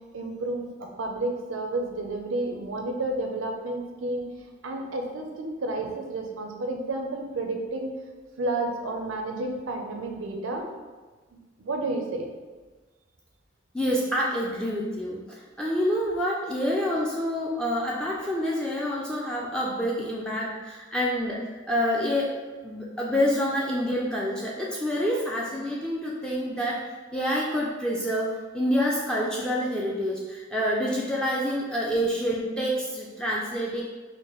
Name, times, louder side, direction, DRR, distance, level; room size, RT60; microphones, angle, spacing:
voice 1, 0.1-4.2 4.6-7.9 8.4-10.7 11.6-12.3, right 2 dB, 80° right, 3 dB, 0.5 m, -31 dB
voice 2, 13.7-26.8 27.1-33.8, equal, 5° left, -4 dB, 0.3 m, -27 dB
4.4 x 2.2 x 3.0 m, 1.3 s
head